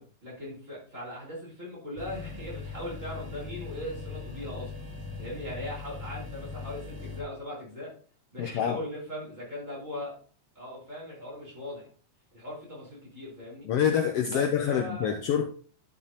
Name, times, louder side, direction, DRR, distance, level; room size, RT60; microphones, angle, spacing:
voice 1, 0.0-4.7 5.2-7.9 8.3-10.1 10.5-11.9 12.3-13.7 14.3-15.2, left 1 dB, 20° right, 4.9 m, -39 dB
sound 1, 2.0-7.2, left 4 dB, 50° right, 2.6 m, -40 dB
voice 2, 8.4-8.8 13.6-15.5, left 8 dB, 80° left, 1.3 m, -26 dB
11.5 x 7.1 x 2.9 m
omnidirectional pair, 3.7 m